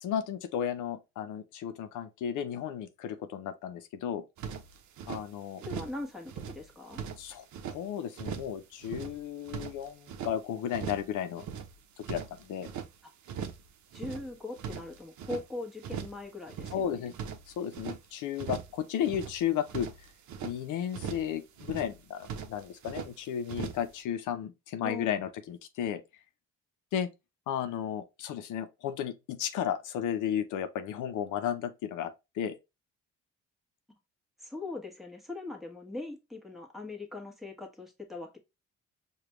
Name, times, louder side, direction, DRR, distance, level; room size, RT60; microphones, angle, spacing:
voice 1, 0.0-4.2 5.1-5.6 7.2-11.4 12.0-12.7 16.7-17.1 17.5-19.9 20.4-26.0 26.9-27.1 27.5-32.6, left 9 dB, 85° left, 0.6 m, -34 dB
dragon wings, 4.4-5.2 5.6-6.0 6.3-7.8 8.1-8.6 8.8-10.3 10.7-11.1 11.4-12.9 13.3-13.7 13.9-15.5 15.8-16.2 16.5-18.0 18.4-18.8 19.0-20.6 20.9-21.3 21.6-22.0 22.2-23.1 23.5-23.9, right 7 dB, 70° right, 0.7 m, -40 dB
voice 2, 5.6-7.0 13.0-13.1 13.9-17.0 24.8-25.2 34.4-38.4, left 2 dB, ahead, 1.2 m, -41 dB
4.9 x 2.4 x 2.9 m
cardioid pair, 90°, 30 cm